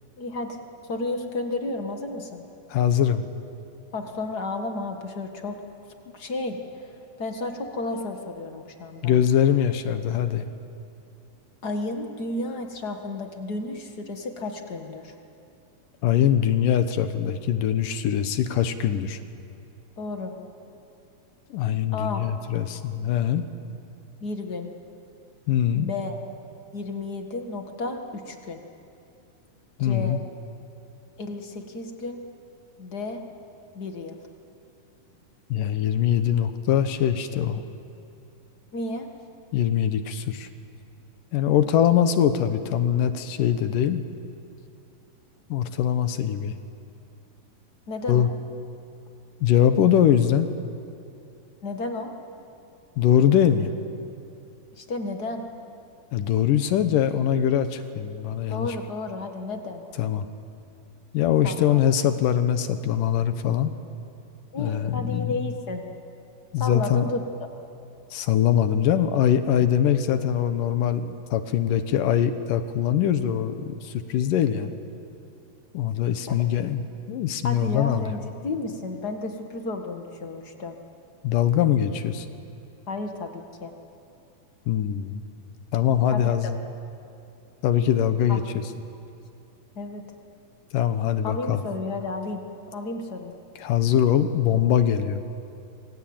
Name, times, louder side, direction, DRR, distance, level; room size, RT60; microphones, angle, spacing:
voice 1, 0.2-2.4 3.9-5.6 6.1-6.6 7.2-9.1 11.6-15.2 20.0-20.3 21.9-22.2 24.2-24.7 25.7-26.2 26.7-28.6 29.8-30.2 31.2-32.2 32.8-33.2 33.7-34.2 38.7-39.1 47.9-48.3 51.6-52.1 54.8-55.4 58.5-59.8 61.4-61.8 64.5-65.8 66.6-67.2 76.3-76.4 77.4-80.8 82.9-83.7 86.1-86.5 88.3-88.4 89.7-90.0 91.2-92.4 92.7-93.3, left 2 dB, 40° left, 4 dB, 1.6 m, -32 dB
voice 2, 2.7-3.3 9.0-10.4 16.0-19.2 21.5-23.5 25.5-25.9 29.8-30.2 35.5-37.6 39.5-40.5 41.3-44.0 45.5-46.6 48.1-48.3 49.4-50.5 53.0-53.7 56.1-58.8 60.0-60.3 61.1-63.7 64.6-65.3 66.5-67.0 68.1-74.7 75.7-76.8 77.1-78.2 81.2-82.3 84.7-85.2 85.7-86.6 87.6-88.6 90.7-91.6 93.6-95.2, left 9 dB, 70° left, 10 dB, 2.5 m, -22 dB
27.5 x 24.5 x 8.8 m, 2.6 s
omnidirectional pair, 4.2 m